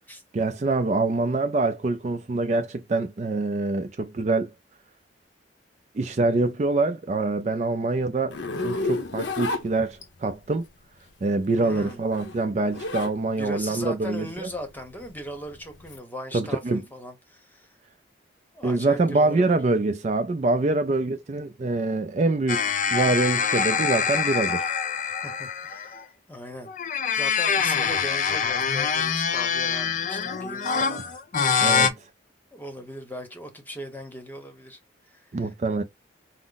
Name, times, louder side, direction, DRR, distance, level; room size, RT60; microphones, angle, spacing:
voice 1, 0.3-4.5 5.9-10.6 11.2-14.5 16.3-16.8 18.6-24.7 31.0-31.1 31.6-32.0 35.3-35.8, right 3 dB, 40° right, 0.3 m, -25 dB
Zipper (clothing), 8.3-10.3 11.5-13.2 13.5-16.0, left 3 dB, 80° left, 0.8 m, -31 dB
voice 2, 11.5-12.0 13.4-17.7 18.5-19.6 25.0-31.1 32.5-34.8 35.1-35.5, equal, 10° left, 0.9 m, -39 dB
sound 1, 22.5-26.0 26.7-31.9, left 6 dB, 45° left, 0.5 m, -25 dB
4.8 x 2.0 x 3.9 m
head